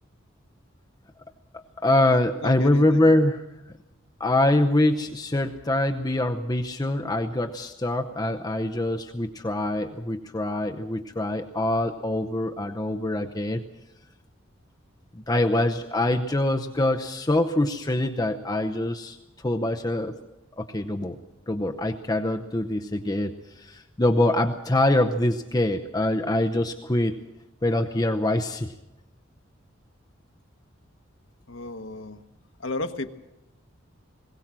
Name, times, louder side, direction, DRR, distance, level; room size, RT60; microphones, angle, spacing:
voice 1, 1.8-3.4 4.2-13.6 15.3-19.2 19.4-20.1 20.6-21.2 21.5-27.2 27.6-28.7, left 1 dB, 20° left, 5 dB, 0.7 m, -24 dB
voice 2, 2.4-3.2 31.5-32.2 32.6-33.1, left 2 dB, 70° left, 6 dB, 1.2 m, -33 dB
21.0 x 17.5 x 7.5 m, 0.96 s
head